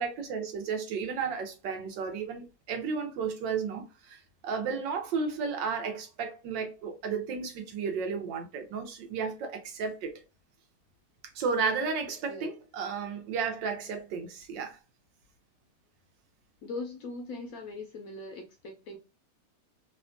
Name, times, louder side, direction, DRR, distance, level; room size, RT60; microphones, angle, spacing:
voice 1, 0.0-10.2 11.3-14.8, right 5 dB, 90° right, 1.4 m, -33 dB
voice 2, 16.6-19.0, left 3 dB, 70° left, 0.8 m, -40 dB
3.4 x 2.2 x 2.5 m
omnidirectional pair, 1.9 m